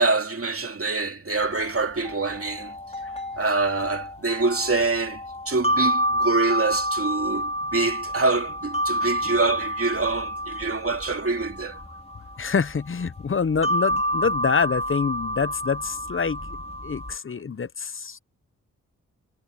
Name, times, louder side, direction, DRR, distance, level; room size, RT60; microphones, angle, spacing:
voice 1, 0.0-2.8 3.4-11.8, right 3 dB, 45° right, 2.7 m, -25 dB
sound 1, 1.3-17.1, equal, 20° left, 4.9 m, -29 dB
voice 2, 12.4-16.4 16.8-18.2, left 5 dB, 40° left, 0.8 m, -26 dB
cardioid pair, 50°, 33 cm